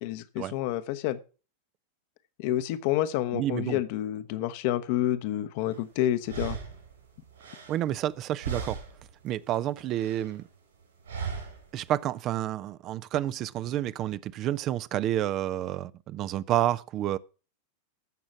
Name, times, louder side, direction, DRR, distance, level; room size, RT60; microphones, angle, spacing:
voice 1, 0.0-1.2 2.4-6.6, left 13 dB, 45° left, 0.9 m, -29 dB
voice 2, 3.3-3.8 7.7-8.8 9.2-10.5 11.7-17.2, right 12 dB, 35° right, 0.5 m, -29 dB
sound 1, 5.7-5.8 6.2-8.2 8.4-9.1 9.4-10.4 11.1-11.7, right 6 dB, 70° right, 4.6 m, -37 dB
15.0 x 6.3 x 6.0 m
figure-of-eight pair, 90°, 0 cm